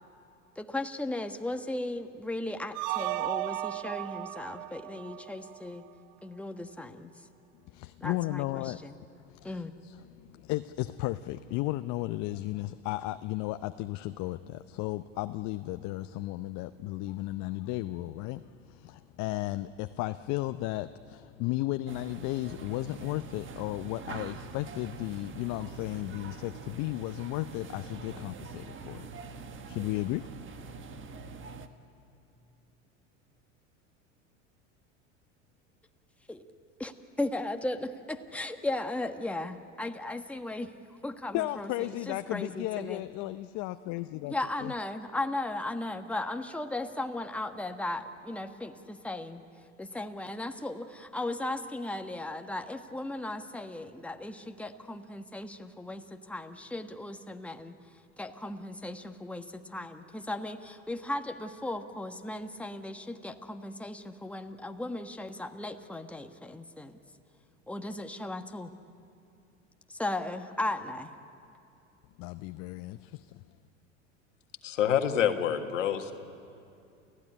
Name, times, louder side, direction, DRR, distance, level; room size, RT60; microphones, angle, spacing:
voice 1, 0.5-5.8 6.2-7.1 8.0-9.0 9.4-9.8 36.3-36.4 36.8-43.0 44.3-49.4 49.8-57.7 58.2-67.0 67.7-68.7 69.9-71.1, left 2 dB, 5° left, 6 dB, 1.3 m, -36 dB
sound 1, 2.7-5.9, right 16 dB, 60° right, 0.8 m, -35 dB
voice 2, 7.7-29.1 29.7-30.6 41.3-44.7 72.2-73.4, left 17 dB, 50° left, 11 dB, 0.7 m, -35 dB
sound 2, 21.9-31.7, right 4 dB, 35° right, 1.6 m, -44 dB
voice 3, 74.6-76.1, left 9 dB, 80° left, 7 dB, 1.7 m, -27 dB
29.0 x 15.5 x 10.0 m, 2.6 s
hypercardioid pair, 85°, 37 cm